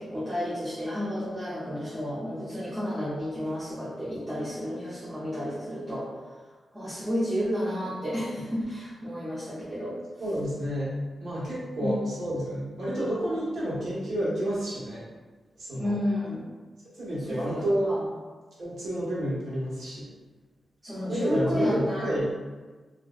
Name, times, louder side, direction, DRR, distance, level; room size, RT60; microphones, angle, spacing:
voice 1, 0.0-6.1 6.7-10.0 11.8-12.0 15.7-16.4 17.3-18.1 20.8-22.0, equal, 15° right, -10 dB, 0.7 m, -31 dB
voice 2, 10.2-10.9 11.2-15.0 15.6-15.9 17.0-17.9 18.6-20.1 21.1-22.3, right 1 dB, 85° right, -9 dB, 1.2 m, -29 dB
3.0 x 2.5 x 2.4 m, 1.3 s
wide cardioid pair, 125°, 0 cm